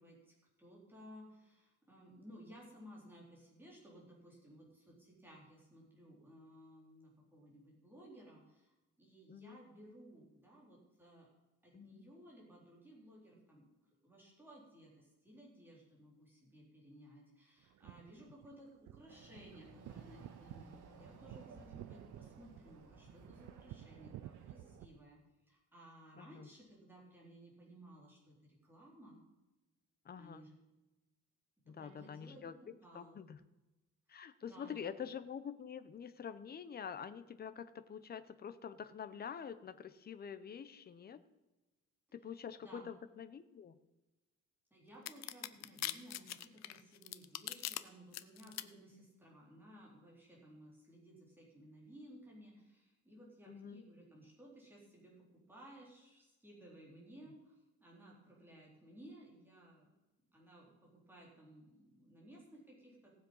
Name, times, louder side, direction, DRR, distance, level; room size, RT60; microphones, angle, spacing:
voice 1, 0.0-8.7 9.0-11.3 11.6-13.7 14.0-25.2 25.5-29.2 30.1-30.6 31.7-33.3 34.1-35.1 42.6-42.9 44.7-59.9 60.3-63.1, right 1 dB, 5° right, -4 dB, 4.1 m, -58 dB
voice 2, 9.3-9.6 11.7-12.0 26.2-26.5 30.0-30.5 31.7-32.5 32.9-33.4 34.1-41.2 42.1-43.8 53.5-53.8, left 7 dB, 30° left, 12 dB, 0.7 m, -46 dB
sound 1, 17.6-24.8, right 14 dB, 70° right, 0.4 m, -54 dB
Chatter / Car passing by / Motorcycle, 19.1-25.0, right 3 dB, 90° right, 2.3 m, -58 dB
sound 2, 45.1-47.8 48.1-48.6, left 13 dB, 60° left, 0.7 m, -41 dB
18.0 x 7.4 x 5.5 m, 1.1 s
cardioid pair, 160°, 30 cm